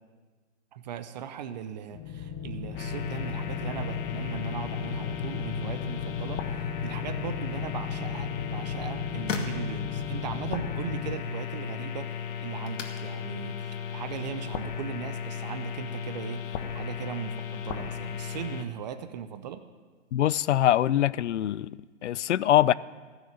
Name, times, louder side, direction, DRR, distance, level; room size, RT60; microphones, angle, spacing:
voice 1, 0.7-19.6, right 9 dB, 35° right, 0.6 m, -38 dB
sound 1, 1.9-11.2, left 7 dB, 20° left, 0.5 m, -36 dB
sound 2, 2.8-18.6, left 7 dB, 45° left, 1.3 m, -36 dB
sound 3, 8.4-15.7, left 4 dB, 85° left, 1.9 m, -43 dB
voice 2, 20.1-21.7 22.0-22.7, left 12 dB, 70° left, 0.5 m, -23 dB
15.5 x 6.6 x 8.8 m
hypercardioid pair, 145°, 37 cm